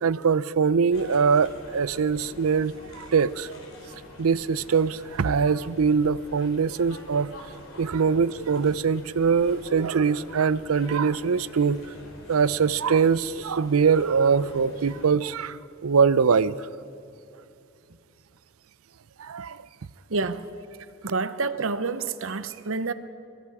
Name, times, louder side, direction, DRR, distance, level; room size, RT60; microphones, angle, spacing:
voice 1, 0.0-3.6 4.2-7.4 7.8-11.9 12.3-15.6 15.8-16.7 19.2-19.6, right 6 dB, 90° right, 0.5 m, -23 dB
sound 1, 0.9-15.1, left 1 dB, 70° left, 3.9 m, -46 dB
voice 2, 20.1-20.5 21.0-22.9, right 4 dB, 70° right, 0.9 m, -28 dB
27.0 x 22.5 x 4.9 m
head